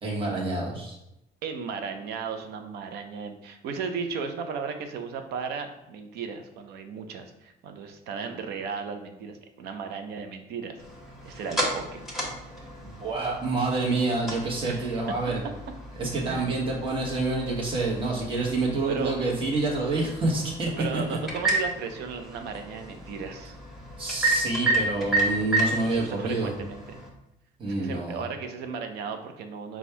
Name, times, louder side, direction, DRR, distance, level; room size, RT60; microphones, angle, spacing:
voice 1, 0.0-1.0 12.8-15.4 16.0-20.7 24.0-26.5 27.6-28.2, right 3 dB, 30° right, -3 dB, 1.2 m, -27 dB
voice 2, 1.4-10.8 11.2-12.0 14.6-14.9 16.2-16.6 18.9-19.2 20.7-23.5 25.8-27.0 27.6-29.8, right 5 dB, 75° right, 6 dB, 0.6 m, -35 dB
sound 1, 10.8-27.1, right 2 dB, ahead, 1.3 m, -32 dB
4.2 x 2.3 x 4.6 m, 0.86 s
cardioid pair, 110°, 17 cm